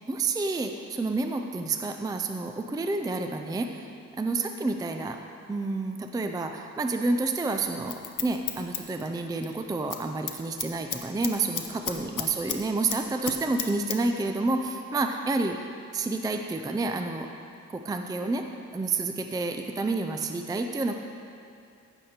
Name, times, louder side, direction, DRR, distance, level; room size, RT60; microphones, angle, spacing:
voice 1, 0.1-3.9 4.2-5.2 5.5-15.6 15.9-17.3 17.7-18.4 18.7-21.0, right 3 dB, 15° right, 5 dB, 0.4 m, -29 dB
Scissors, 7.6-9.5 9.8-10.0 10.3-12.6 12.9-14.0 14.3-14.4, left 8 dB, 80° left, 0.8 m, -33 dB
15.5 x 6.5 x 4.3 m, 2.5 s
wide cardioid pair, 170°, 31 cm